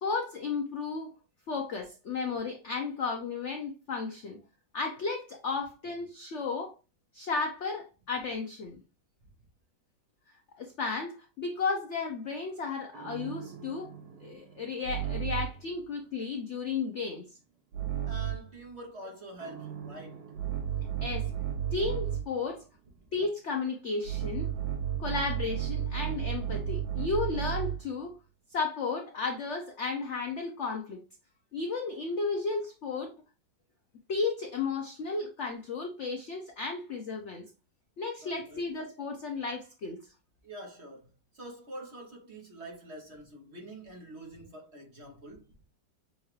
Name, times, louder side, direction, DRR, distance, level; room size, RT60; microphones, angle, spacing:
voice 1, 0.0-1.1 1.5-4.4 4.7-6.7 7.1-8.8 10.6-13.9 14.2-17.3 21.0-21.3 21.7-22.6 23.1-24.5 25.0-28.1 28.5-31.0 31.5-33.1 34.1-37.5 38.0-40.0, left 4 dB, 75° left, 0.6 m, -33 dB
sound 1, 12.9-15.7 17.7-18.5 19.4-22.4 24.0-27.9, right 10 dB, 65° right, 1.2 m, -34 dB
voice 2, 18.1-20.3 38.2-38.6 40.4-41.1 41.3-45.5, right 1 dB, 45° right, 1.0 m, -46 dB
6.8 x 2.4 x 3.1 m
omnidirectional pair, 2.0 m